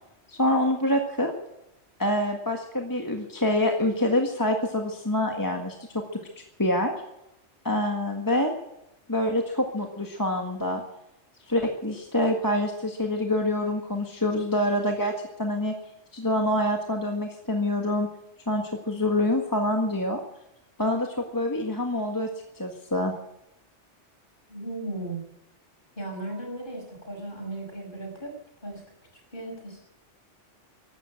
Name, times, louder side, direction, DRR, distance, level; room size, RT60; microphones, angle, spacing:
voice 1, 0.3-1.3 2.0-6.0 6.6-6.9 7.6-8.5 9.1-10.8 11.5-15.1 15.4-15.7 16.1-18.1 18.5-20.2 20.8-22.3 22.6-23.1, left 1 dB, 15° left, 2 dB, 1.7 m, -26 dB
voice 2, 24.5-25.2 26.0-28.3 28.6-28.9 29.3-29.8, right 2 dB, 50° left, 1 dB, 6.2 m, -36 dB
15.5 x 12.5 x 7.6 m, 0.85 s
omnidirectional pair, 1.2 m